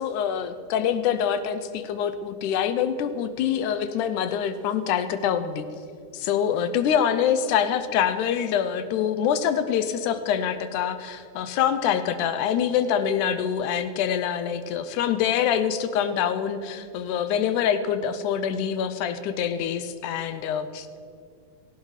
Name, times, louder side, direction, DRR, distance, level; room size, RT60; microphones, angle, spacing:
voice 1, 0.0-5.7 6.1-21.1, left 8 dB, 75° left, 11 dB, 2.1 m, -25 dB
17.0 x 15.0 x 4.9 m, 2.4 s
omnidirectional pair, 3.7 m